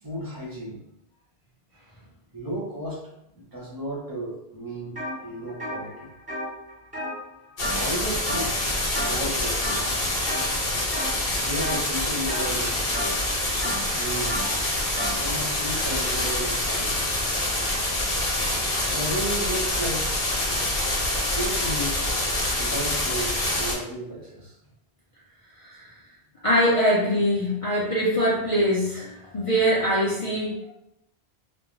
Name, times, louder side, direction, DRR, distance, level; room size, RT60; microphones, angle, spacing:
voice 1, 0.0-0.8 2.3-3.1 3.3-6.1 7.8-9.9 11.1-13.0 13.9-14.4 15.2-17.0 18.8-20.1 21.2-22.1 22.6-24.6, right 1 dB, 25° right, -5 dB, 0.7 m, -34 dB
sound 1, 4.9-5.1 5.5-8.0 8.3-8.6 8.9-9.3 9.6-10.4 10.9-11.2 11.6-15.2, equal, 10° right, 1.0 m, -33 dB
sound 2, 7.6-23.7, left 1 dB, 65° left, 1.0 m, -26 dB
voice 2, 26.4-30.7, equal, 40° left, -8 dB, 0.6 m, -23 dB
2.5 x 2.1 x 3.0 m, 0.81 s
omnidirectional pair, 1.1 m